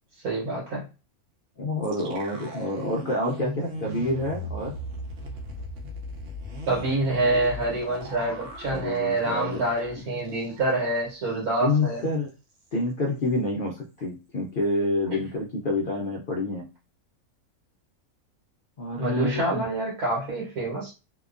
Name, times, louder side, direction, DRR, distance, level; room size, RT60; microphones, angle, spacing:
voice 1, 0.2-0.9 6.7-12.0 19.0-20.9, right 2 dB, 90° right, -3 dB, 1.4 m, -26 dB
voice 2, 1.6-4.7 8.7-9.6 10.0-10.1 11.6-12.3 12.7-16.6 18.8-19.6, left 2 dB, 70° left, 0 dB, 0.5 m, -28 dB
sound 1, 1.8-10.9 11.2-11.3 11.7-12.1, equal, 65° right, 0.9 m, -38 dB
2.8 x 2.2 x 2.4 m, 0.30 s
omnidirectional pair, 1.5 m